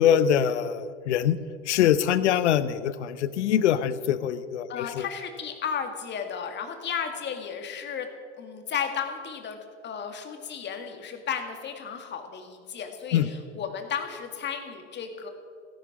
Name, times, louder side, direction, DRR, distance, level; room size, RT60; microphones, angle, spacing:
voice 1, 0.0-1.4 1.7-5.1 13.1-13.3, left 9 dB, 75° left, 14 dB, 0.9 m, -23 dB
voice 2, 4.7-8.1 8.4-15.3, left 7 dB, 30° left, 5 dB, 2.1 m, -34 dB
16.0 x 10.5 x 6.0 m, 2.2 s
hypercardioid pair, 100°, 35 cm